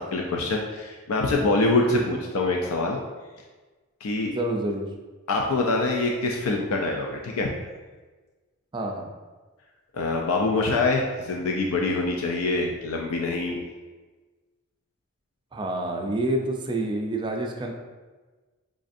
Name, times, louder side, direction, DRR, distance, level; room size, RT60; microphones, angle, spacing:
voice 1, 0.0-3.0 4.0-4.3 5.3-7.5 9.9-13.6, left 3 dB, 90° left, 1 dB, 0.4 m, -25 dB
voice 2, 1.9-2.2 4.3-4.9 8.7-9.1 15.5-17.7, right 1 dB, 20° right, 1 dB, 0.3 m, -28 dB
5.1 x 2.4 x 2.5 m, 1.3 s
head